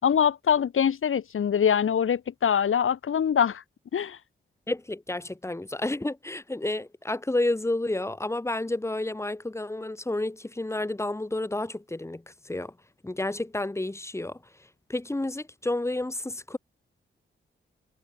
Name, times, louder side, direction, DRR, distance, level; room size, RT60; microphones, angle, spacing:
voice 1, 0.0-3.6 3.9-4.2, left 8 dB, 80° left, 4.0 m, -23 dB
voice 2, 4.7-12.7 13.0-16.6, left 2 dB, 15° left, 3.7 m, -30 dB
wide cardioid pair, 125°, 21 cm